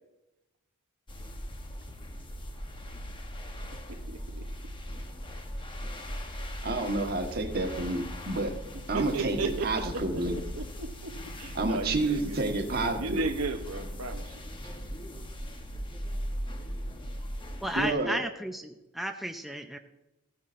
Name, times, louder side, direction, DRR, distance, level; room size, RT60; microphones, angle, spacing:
sound 1, 1.1-17.9, equal, 20° left, 0.9 m, -39 dB
voice 1, 4.1-4.4 8.9-9.7 10.6-11.1 11.4-12.4 13.0-14.2, right 4 dB, 70° right, 7 dB, 0.8 m, -34 dB
voice 2, 6.6-8.6 8.9-10.4 11.5-13.2 17.8-18.2, right 2 dB, 45° right, 4 dB, 1.3 m, -29 dB
voice 3, 17.6-19.8, right 1 dB, ahead, 4 dB, 0.5 m, -33 dB
15.0 x 9.3 x 2.5 m, 0.95 s
head